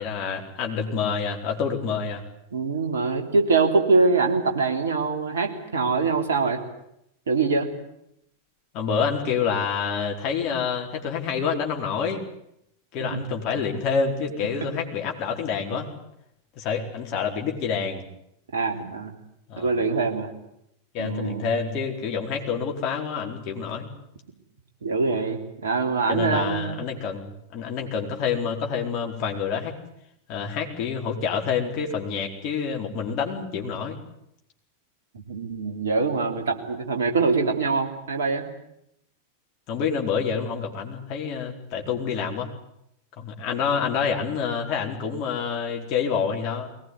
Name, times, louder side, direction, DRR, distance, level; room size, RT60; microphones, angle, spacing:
voice 1, 0.0-2.2 8.7-12.2 12.9-15.9 16.6-18.0 19.5-19.8 20.9-23.9 26.1-29.7 30.3-34.0 39.7-42.5 43.2-46.7, left 6 dB, 40° left, 1 dB, 4.4 m, -27 dB
voice 2, 2.5-6.6 7.3-7.7 13.0-13.2 18.5-19.1 19.6-20.3 21.0-21.5 24.8-26.8 35.1-38.4, right 4 dB, 65° right, 3 dB, 3.4 m, -24 dB
22.0 x 19.0 x 9.7 m, 0.78 s
figure-of-eight pair, 90°, 0 cm